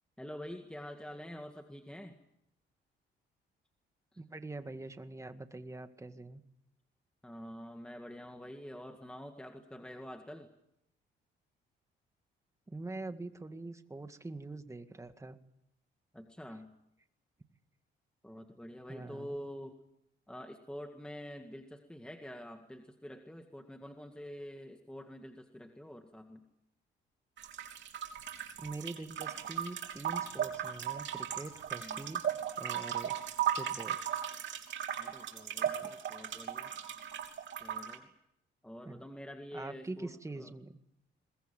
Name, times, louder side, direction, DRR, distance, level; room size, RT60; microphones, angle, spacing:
voice 1, 0.2-2.2 4.1-4.2 7.2-10.5 16.1-16.7 18.2-19.7 20.3-26.4 31.8-32.0 35.0-36.7 37.6-38.1 38.6-40.5, equal, 5° left, 5 dB, 1.9 m, -47 dB
voice 2, 4.2-6.4 12.7-15.4 18.9-19.4 28.6-32.2 32.6-33.2 33.5-34.0 35.6-35.9 38.9-39.0 39.5-40.8, right 2 dB, 15° right, 8 dB, 2.0 m, -44 dB
sound 1, 27.4-38.0, right 9 dB, 70° right, 3.2 m, -37 dB
22.0 x 20.5 x 9.0 m, 0.81 s
cardioid pair, 90°, 20 cm